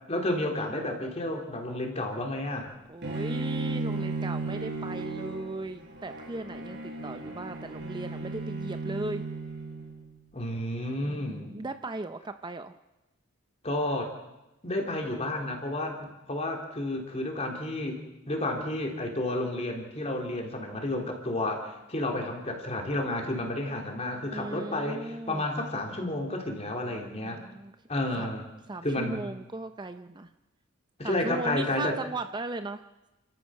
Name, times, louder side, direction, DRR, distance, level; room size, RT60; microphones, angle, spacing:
voice 1, 0.1-2.7 10.3-11.5 13.6-14.1 14.6-18.0 18.3-27.4 27.9-28.5 28.8-29.2 31.0-32.0, left 1 dB, 30° left, 2 dB, 3.3 m, -31 dB
voice 2, 2.9-9.2 11.0-12.7 24.3-25.4 27.2-27.7 28.2-28.3 28.7-30.3 31.0-32.8, right 2 dB, 20° right, 9 dB, 0.6 m, -37 dB
Bowed string instrument, 3.0-10.1, right 3 dB, 60° right, 6.0 m, -35 dB
29.5 x 14.0 x 6.4 m, 0.98 s
head